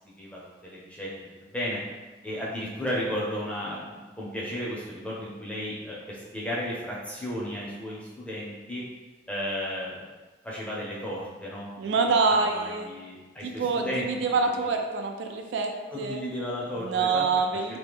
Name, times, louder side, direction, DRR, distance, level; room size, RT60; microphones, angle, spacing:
voice 1, 0.2-1.1 1.4-1.8 2.2-8.8 9.3-10.1 10.4-12.0 12.3-14.1 15.9-17.3 17.5-17.8, equal, 5° left, -6 dB, 0.6 m, -34 dB
voice 2, 11.8-12.9 13.4-15.7 16.0-16.2 16.8-17.8, right 4 dB, 75° right, 4 dB, 0.3 m, -26 dB
3.0 x 2.2 x 3.4 m, 1.3 s
head